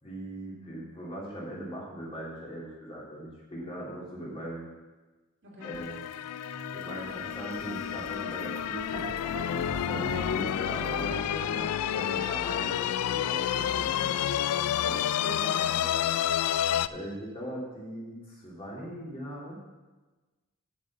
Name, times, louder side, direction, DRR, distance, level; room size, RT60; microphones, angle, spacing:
voice 1, 0.0-4.7 5.6-6.0 6.7-9.1 9.5-14.5 14.8-15.0 16.9-19.6, equal, 25° left, -4 dB, 2.5 m, -40 dB
sound 1, 5.6-16.9, left 10 dB, 80° left, 0.3 m, -30 dB
sound 2, 5.7-12.5, right 2 dB, 30° right, 1.4 m, -44 dB
voice 2, 9.9-10.4 15.2-16.3, right 1 dB, 55° right, -3 dB, 2.8 m, -43 dB
7.5 x 6.6 x 7.3 m, 1.2 s
head